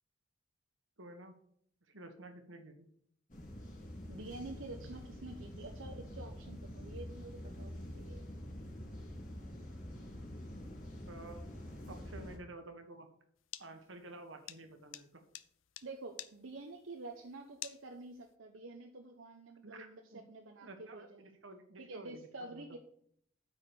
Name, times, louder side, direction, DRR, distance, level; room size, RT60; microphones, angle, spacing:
voice 1, 1.0-1.4 1.9-2.9 11.1-11.4 11.9-13.1 13.6-15.2 19.6-20.2 20.6-21.1 21.4-22.8, right 2 dB, 70° right, 6 dB, 1.6 m, -51 dB
sound 1, 3.3-12.4, left 1 dB, 45° left, 3.0 m, -46 dB
voice 2, 4.1-8.3 15.8-21.3 21.8-22.8, right 2 dB, 85° right, 2 dB, 1.0 m, -48 dB
sound 2, 13.4-18.3, left 13 dB, 75° left, 0.6 m, -49 dB
9.2 x 4.9 x 7.0 m, 0.66 s
head